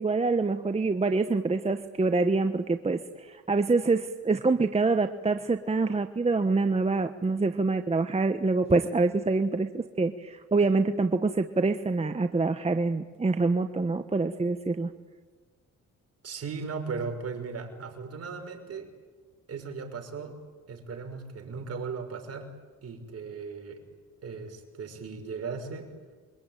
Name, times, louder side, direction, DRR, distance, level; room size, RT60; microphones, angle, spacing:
voice 1, 0.0-14.9, right 3 dB, 20° right, 8 dB, 1.2 m, -26 dB
voice 2, 16.2-18.9 19.5-20.4 20.7-22.5 22.8-23.8 24.2-25.9, right 5 dB, 55° right, 4 dB, 6.0 m, -37 dB
27.5 x 23.5 x 9.2 m, 1.4 s
cardioid pair, 90°, 30 cm